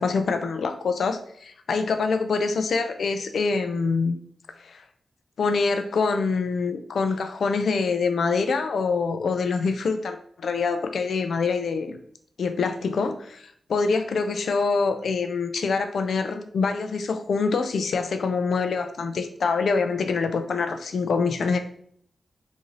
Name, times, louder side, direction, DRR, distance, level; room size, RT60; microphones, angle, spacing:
voice 1, 0.0-4.2 4.6-4.8 5.4-12.0 12.4-21.6, left 4 dB, 85° left, 7 dB, 0.3 m, -25 dB
3.8 x 2.6 x 3.0 m, 0.63 s
wide cardioid pair, 155°, 0 cm